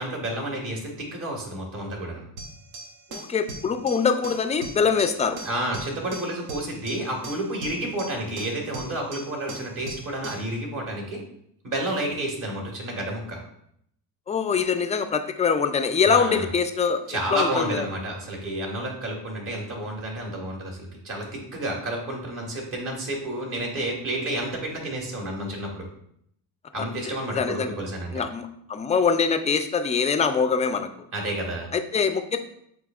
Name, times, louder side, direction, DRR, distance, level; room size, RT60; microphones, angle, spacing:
voice 1, 0.0-2.2 5.4-11.2 11.6-13.4 16.0-16.5 17.1-25.9 26.7-28.2 31.1-31.7, right 1 dB, 50° right, -1 dB, 1.8 m, -30 dB
sound 1, 2.4-10.5, right 2 dB, 65° right, 1.0 m, -40 dB
voice 2, 3.1-5.4 14.3-17.0 17.3-17.8 27.1-27.7 28.1-30.9 31.7-32.4, left 6 dB, 20° left, 8 dB, 0.3 m, -23 dB
7.6 x 2.9 x 2.4 m, 0.72 s
cardioid pair, 100°, 41 cm